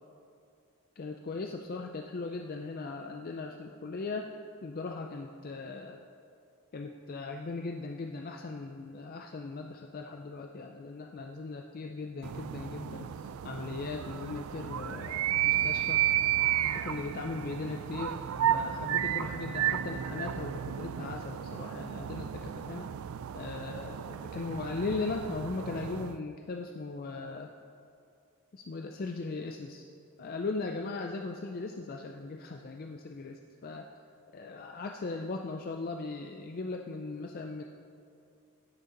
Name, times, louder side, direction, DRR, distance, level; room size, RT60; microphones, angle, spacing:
voice 1, 1.0-4.3 4.6-6.0 6.7-16.0 16.7-18.2 18.5-22.9 23.3-27.5 28.5-29.9 30.2-33.9 34.3-37.6, left 3 dB, 40° left, 3 dB, 0.4 m, -38 dB
sound 1, 12.2-26.2, right 11 dB, 70° right, 0.3 m, -33 dB
16.0 x 6.6 x 3.9 m, 2.4 s
head